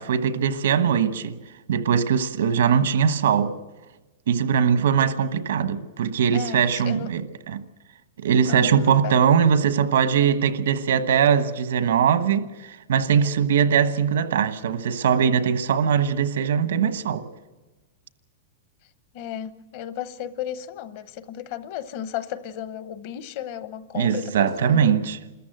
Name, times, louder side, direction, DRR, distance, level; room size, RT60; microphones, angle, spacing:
voice 1, 0.0-1.4 1.7-3.5 4.3-7.6 8.2-17.3 23.9-25.2, right 7 dB, 90° right, 1.2 m, -21 dB
voice 2, 6.3-7.1 8.5-9.2 19.1-25.0, left 10 dB, 40° left, 0.8 m, -34 dB
27.0 x 14.0 x 7.8 m
supercardioid pair, 170°, 0 cm